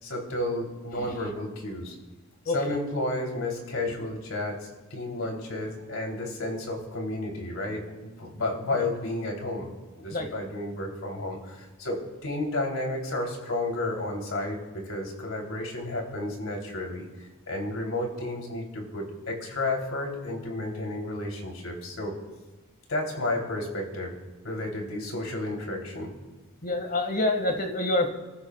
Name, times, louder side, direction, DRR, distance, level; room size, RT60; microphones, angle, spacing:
voice 1, 0.0-2.0 2.5-9.7 10.0-22.2 22.9-24.1 24.4-26.1, left 2 dB, 75° left, 1 dB, 3.4 m, -32 dB
voice 2, 26.6-28.1, left 2 dB, 45° left, 5 dB, 1.9 m, -26 dB
29.0 x 15.0 x 2.4 m, 1.3 s
head